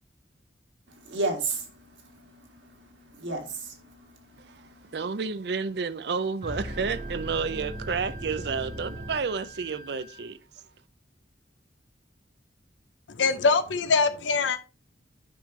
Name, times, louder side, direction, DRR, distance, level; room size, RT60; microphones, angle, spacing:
voice 1, 1.1-4.9, right 3 dB, 90° right, 2.2 m, -34 dB
voice 2, 4.9-10.4, right 5 dB, 65° right, 0.5 m, -30 dB
Wind instrument woodwind instrument, 6.4-10.3, right 3 dB, 40° left, 2.0 m, -48 dB
sound 1, 6.4-9.9, equal, 40° right, 1.5 m, -38 dB
voice 3, 13.2-14.6, left 4 dB, 80° left, 0.6 m, -23 dB
9.4 x 5.0 x 3.2 m
head